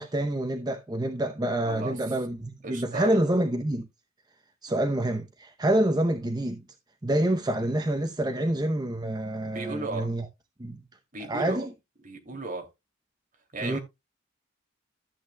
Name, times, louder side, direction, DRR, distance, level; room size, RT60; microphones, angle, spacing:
voice 1, 0.0-3.9 4.6-6.6 7.0-10.3 10.6-10.8 11.3-11.7 13.6-13.8, right 1 dB, 20° right, 0.7 m, -27 dB
voice 2, 1.6-2.0 2.6-3.2 4.7-4.8 9.5-10.1 11.1-11.7 12.0-12.6 13.5-13.8, right 3 dB, 45° right, 2.6 m, -35 dB
13.5 x 8.3 x 2.2 m
head